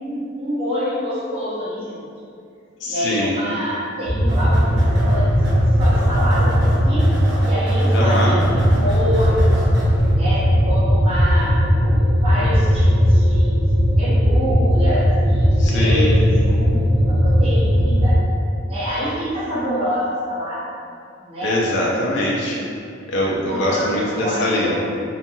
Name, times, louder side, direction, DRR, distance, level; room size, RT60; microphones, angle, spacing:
voice 1, 0.0-2.0 2.9-5.3 5.8-7.1 7.4-9.5 10.1-16.8 17.1-18.2 18.7-20.6 21.2-21.6 23.4-24.8, equal, 30° right, -10 dB, 0.7 m, -27 dB
voice 2, 2.8-3.3 7.9-8.4 15.6-16.2 21.4-22.6 23.1-24.7, left 1 dB, 60° left, -5 dB, 0.4 m, -22 dB
sound 1, 4.1-18.2, equal, 85° right, 0.8 m, -17 dB
sound 2, 4.3-10.1, equal, 55° right, 1.0 m, -31 dB
2.7 x 2.2 x 2.6 m, 2.4 s
head